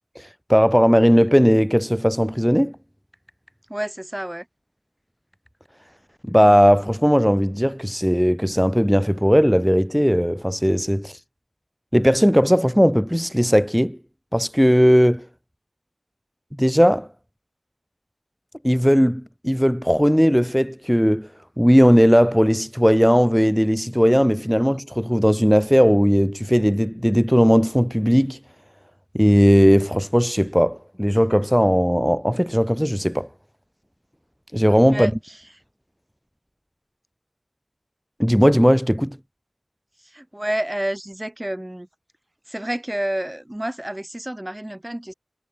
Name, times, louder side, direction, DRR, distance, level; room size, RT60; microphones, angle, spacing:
voice 1, 0.2-2.7 6.2-11.2 11.9-14.0 14.3-15.3 16.6-17.1 18.6-21.3 21.6-28.4 29.1-33.3 34.5-35.1 38.2-39.2, equal, ahead, 0.4 m, -17 dB
voice 2, 3.7-4.5 34.9-35.4 40.0-41.9 42.5-45.1, right 1 dB, 20° right, 2.4 m, -29 dB
wide cardioid pair, 50°, 0 cm